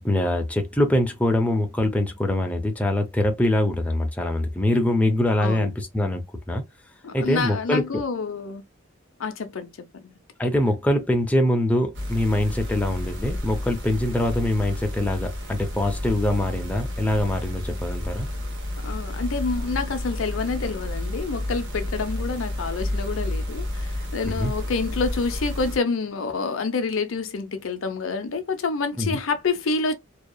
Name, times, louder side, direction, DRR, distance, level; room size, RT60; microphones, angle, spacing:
voice 1, 0.0-6.6 7.1-7.8 10.4-18.3 24.2-24.5 29.0-29.2, left 1 dB, 5° left, 0.5 m, -23 dB
voice 2, 5.4-5.7 7.0-8.6 9.2-10.1 18.8-29.9, left 4 dB, 75° left, 0.6 m, -28 dB
sound 1, 11.9-25.8, left 1 dB, 60° right, 1.1 m, -31 dB
2.8 x 2.3 x 2.2 m
head